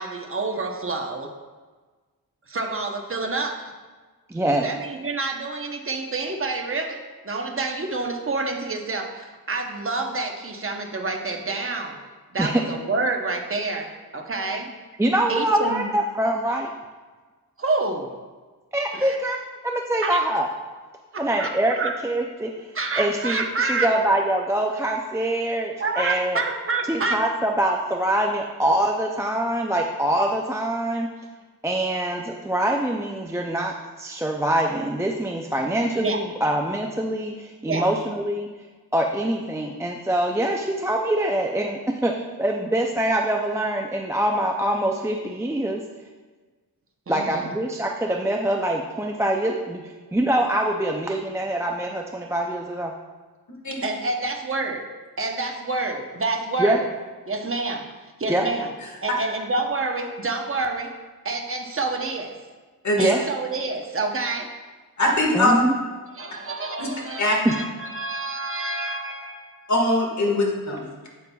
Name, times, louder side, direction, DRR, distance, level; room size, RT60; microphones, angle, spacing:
voice 1, 0.0-1.3 2.5-3.7 4.6-12.0 12.3-14.7 15.3-15.9 17.6-18.2 18.9-19.2 20.0-20.2 21.1-21.9 22.7-23.9 25.8-27.2 36.0-36.2 37.7-37.9 47.1-47.5 53.8-54.9 55.2-56.9 57.3-57.9 58.2-58.7 59.0-60.9 61.2-62.3 63.0-64.5 66.2-69.7, right 3 dB, 35° right, 3 dB, 0.8 m, -28 dB
voice 2, 4.3-4.7 12.4-12.6 15.0-16.7 18.7-19.4 19.6-20.5 21.2-22.7 23.0-26.4 26.9-31.1 31.6-38.5 38.9-45.8 47.1-52.9 56.6-56.8 58.3-58.4 63.0-63.2 65.3-65.7 67.5-67.6, right 1 dB, 10° right, 1 dB, 0.3 m, -24 dB
voice 3, 65.0-65.5 66.8-66.9 67.2-67.4 69.7-70.8, left 1 dB, 50° left, -1 dB, 1.7 m, -21 dB
8.4 x 8.3 x 2.3 m, 1.4 s
wide cardioid pair, 140°, 38 cm